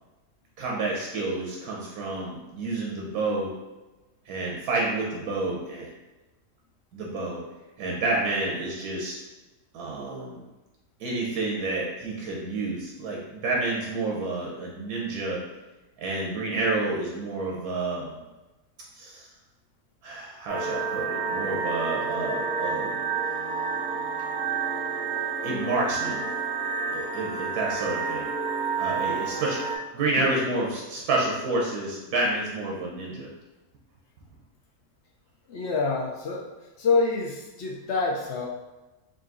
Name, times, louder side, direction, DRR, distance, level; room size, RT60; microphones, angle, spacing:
voice 1, 0.6-3.5 4.3-5.9 6.9-7.4 7.8-9.1 9.7-10.4 11.0-15.4 16.0-18.2 18.9-19.3 20.0-22.9 25.4-26.2 26.9-28.3 28.8-29.6 29.9-33.3, right 2 dB, 85° right, -3 dB, 1.3 m, -29 dB
sound 1, 20.5-29.8, right 5 dB, 55° right, 1.9 m, -30 dB
voice 2, 35.5-36.5 36.8-38.5, left 4 dB, 60° left, -2 dB, 0.8 m, -26 dB
3.8 x 2.6 x 3.7 m, 1.1 s
omnidirectional pair, 1.6 m